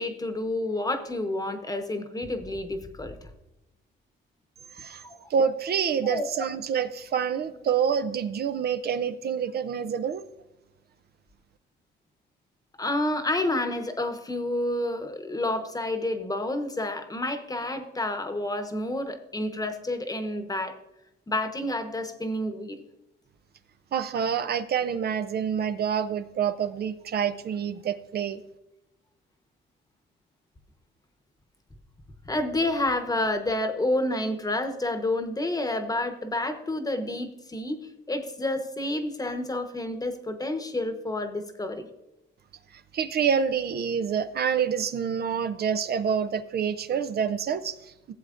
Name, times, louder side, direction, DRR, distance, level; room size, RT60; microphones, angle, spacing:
voice 1, 0.0-3.2 5.0-5.2 6.0-6.3 12.8-20.8 21.3-22.8 32.2-37.8 38.1-41.9, left 1 dB, 20° left, 8 dB, 1.0 m, -29 dB
voice 2, 4.7-5.0 5.3-10.2 23.9-28.4 42.9-48.1, right 7 dB, 55° right, 9 dB, 0.5 m, -27 dB
15.0 x 7.6 x 2.5 m, 0.94 s
cardioid pair, 90°, 20 cm